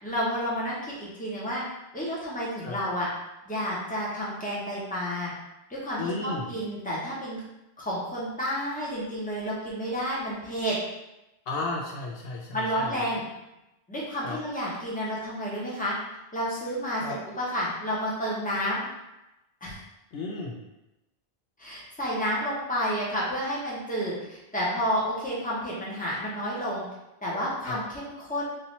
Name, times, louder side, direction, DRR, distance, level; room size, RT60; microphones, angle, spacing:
voice 1, 0.0-1.6 1.9-3.1 3.4-5.3 5.7-7.4 7.8-10.8 12.5-13.2 13.9-15.9 16.3-18.8 19.6-19.7 21.6-26.8 27.2-28.5, equal, 10° left, -7 dB, 1.1 m, -30 dB
voice 2, 6.0-6.5 11.5-13.0 14.2-14.4 17.0-17.2 20.1-20.6 27.6-27.8, left 3 dB, 70° left, -1 dB, 0.8 m, -33 dB
3.4 x 2.7 x 4.1 m, 0.94 s
omnidirectional pair, 1.0 m